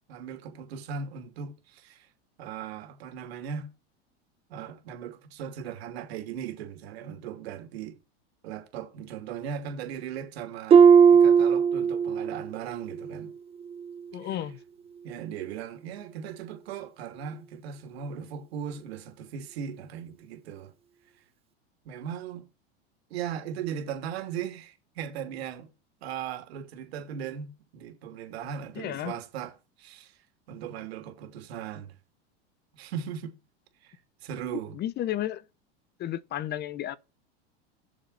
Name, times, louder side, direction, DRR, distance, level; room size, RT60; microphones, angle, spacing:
voice 1, 0.1-2.1 2.4-3.7 4.5-8.0 8.4-13.3 14.2-14.3 15.0-20.7 21.8-22.5 23.1-25.7 26.0-30.1 30.5-31.9 32.7-33.4 33.8-34.0 34.2-34.8, right 8 dB, 75° right, 2.9 m, -38 dB
Harp, 10.7-12.5 12.8-13.2 13.8-13.9, right 7 dB, 20° right, 0.5 m, -18 dB
voice 2, 14.1-14.6 28.8-29.2 34.5-35.4 36.0-37.0, left 12 dB, 30° left, 0.7 m, -33 dB
7.4 x 7.1 x 5.4 m
supercardioid pair, 130°, 31 cm